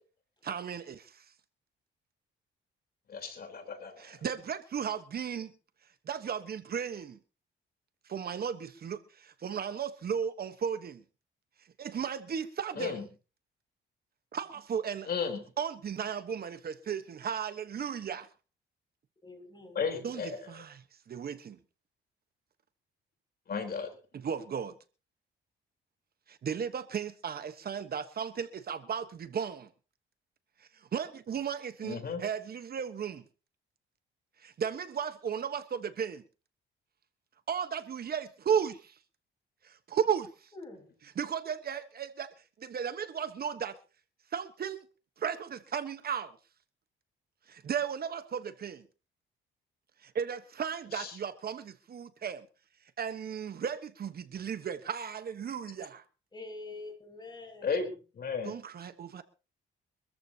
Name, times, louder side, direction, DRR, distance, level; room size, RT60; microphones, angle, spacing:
voice 1, 0.4-1.2 4.0-5.5 6.1-7.2 8.0-11.0 11.8-13.0 14.3-15.1 15.6-18.3 20.0-21.6 24.1-24.7 26.3-29.7 30.6-33.2 34.4-36.2 37.5-39.0 39.6-40.5 41.2-42.3 42.6-43.8 44.3-44.8 45.2-46.4 47.5-48.8 50.0-52.5 53.0-56.0 58.4-59.2, right 7 dB, 50° right, 1.3 m, -35 dB
voice 2, 3.1-4.2 12.8-13.1 15.1-15.4 19.7-20.4 23.5-23.9 31.8-32.2 50.9-51.1 57.6-57.9 58.2-58.5, left 5 dB, 50° left, 4.0 m, -34 dB
voice 3, 19.2-19.9 40.5-40.9 56.3-58.0, left 3 dB, 20° left, 6.8 m, -46 dB
25.0 x 14.0 x 2.9 m
cardioid pair, 90°, 20 cm